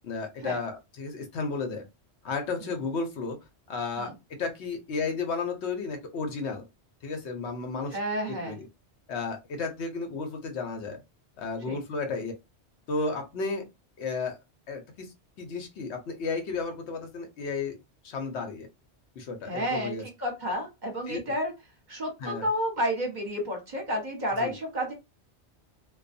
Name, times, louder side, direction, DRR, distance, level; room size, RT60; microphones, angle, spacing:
voice 1, 0.0-1.8 2.2-3.4 3.7-6.7 7.0-8.0 8.4-8.7 9.1-11.0 11.4-12.3 12.9-13.6 14.0-14.4 14.7-17.8 18.0-18.7 19.2-20.0 21.1-21.2 22.2-22.5 24.4-24.5, left 4 dB, 70° left, 4 dB, 0.9 m, -33 dB
voice 2, 7.9-8.6 11.7-11.8 19.5-19.9 20.2-21.5 21.9-24.9, equal, 45° right, 1 dB, 0.9 m, -30 dB
2.3 x 2.3 x 2.5 m, 0.23 s
omnidirectional pair, 1.2 m